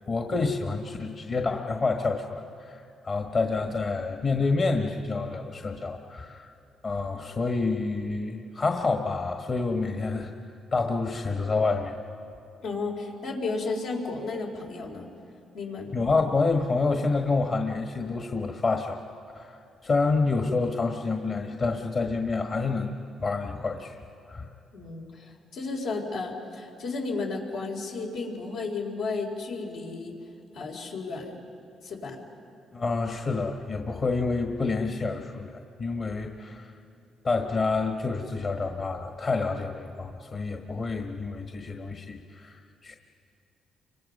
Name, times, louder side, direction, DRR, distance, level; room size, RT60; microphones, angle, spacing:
voice 1, 0.1-6.5 6.8-10.3 10.7-12.0 15.9-19.0 19.3-23.0 23.2-24.0 24.3-24.5 32.7-36.7 37.2-42.6 42.8-43.0, left 3 dB, 45° left, 4 dB, 1.5 m, -28 dB
voice 2, 12.6-15.1 15.5-16.0 24.7-30.1 30.5-31.3 31.8-32.2, left 3 dB, 85° left, -1 dB, 4.3 m, -33 dB
30.0 x 24.5 x 5.5 m, 2.7 s
cardioid pair, 90°, 0 cm